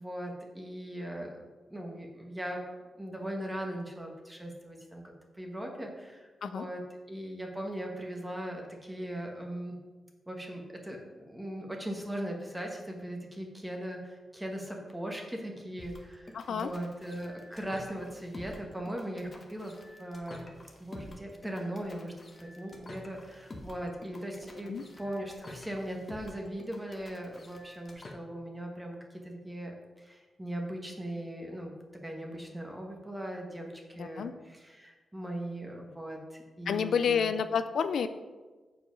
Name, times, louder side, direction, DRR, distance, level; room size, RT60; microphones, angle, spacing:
voice 1, 0.0-2.6 3.0-5.0 5.3-6.8 7.1-9.8 10.3-20.5 20.8-22.1 22.4-31.7 32.0-37.3, right 1 dB, 10° right, 1 dB, 1.2 m, -39 dB
sound 1, 15.8-28.1, left 2 dB, 35° left, 1.1 m, -49 dB
voice 2, 16.3-16.7 24.7-24.8 34.0-34.3 36.7-38.1, left 7 dB, 75° left, 11 dB, 0.4 m, -29 dB
7.0 x 4.9 x 5.1 m, 1.3 s
cardioid pair, 105°, 0 cm